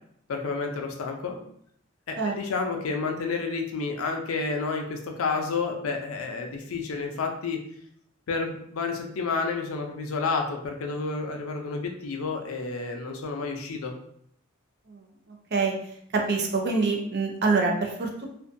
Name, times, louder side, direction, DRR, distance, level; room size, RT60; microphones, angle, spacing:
voice 1, 0.3-1.4 2.1-7.6 8.3-14.0, left 4 dB, 80° left, 3 dB, 0.5 m, -30 dB
voice 2, 16.1-18.2, right 4 dB, 50° right, 2 dB, 0.5 m, -25 dB
2.6 x 2.2 x 2.5 m, 0.68 s
head